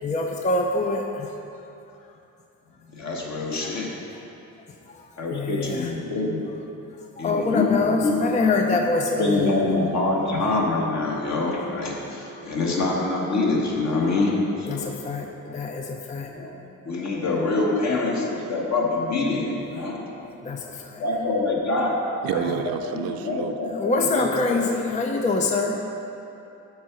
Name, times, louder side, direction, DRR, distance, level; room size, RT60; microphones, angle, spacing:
voice 1, 0.0-1.3 3.6-4.0 4.9-5.9 7.2-9.5 12.3-12.5 14.6-16.3 20.4-21.0 22.5-22.6 23.7-25.8, left 3 dB, 20° left, 3 dB, 0.5 m, -25 dB
voice 2, 2.9-3.9 5.2-6.4 7.2-8.2 8.7-8.8 9.2-14.9 16.3-16.5 16.8-20.0 20.6-22.0 22.3-22.4 22.8-22.9 23.2-24.3, left 3 dB, 50° left, -2 dB, 1.6 m, -25 dB
voice 3, 22.2-23.6, right 9 dB, 90° right, 8 dB, 0.5 m, -29 dB
7.3 x 4.7 x 6.0 m, 2.8 s
cardioid pair, 90°, 34 cm